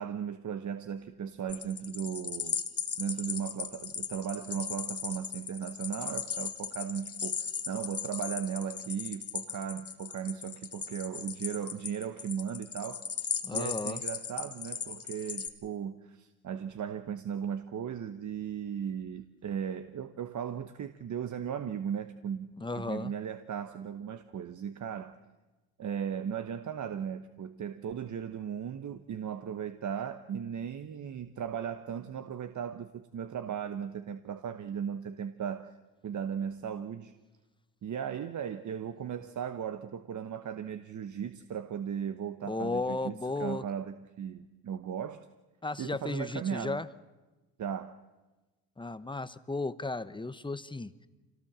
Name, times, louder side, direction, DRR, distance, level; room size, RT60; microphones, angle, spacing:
voice 1, 0.0-2.6 3.0-13.1 13.5-25.2 25.8-35.7 36.0-37.1 37.8-43.1 43.4-45.3 45.8-46.9 47.6-48.0, right 8 dB, 45° right, 10 dB, 1.1 m, -37 dB
sound 1, 1.5-15.5, left 6 dB, 35° left, 1.8 m, -37 dB
voice 2, 13.4-14.0 22.6-23.1 42.4-43.6 45.6-46.9 48.8-51.1, left 3 dB, 10° left, 14 dB, 0.9 m, -35 dB
25.0 x 18.0 x 7.5 m, 1.2 s
supercardioid pair, 80°, 42 cm